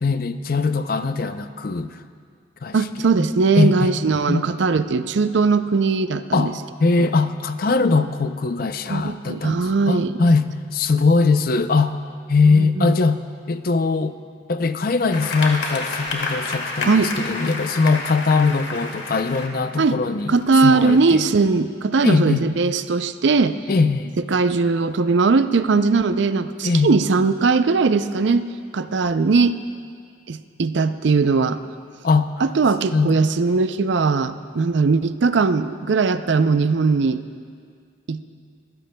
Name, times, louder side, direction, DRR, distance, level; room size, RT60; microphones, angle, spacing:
voice 1, 0.0-2.0 2.6-2.8 3.6-3.9 4.3-4.4 6.3-6.5 6.8-12.0 12.3-14.1 14.5-20.3 20.6-21.3 22.0-22.5 23.7-24.2 26.6-27.0 32.0-32.4 32.9-33.1, left 4 dB, 50° left, 10 dB, 0.5 m, -21 dB
voice 2, 2.7-6.5 7.0-7.1 8.9-10.2 12.5-13.0 16.8-17.1 19.8-20.0 20.3-23.6 24.3-28.5 28.7-29.6 30.3-31.6 32.4-37.2 38.1-38.2, right 4 dB, 70° right, 11 dB, 0.5 m, -19 dB
sound 1, 15.1-19.5 20.2-21.0, left 3 dB, 70° left, 1.9 m, -29 dB
25.5 x 15.5 x 2.2 m, 2.1 s
head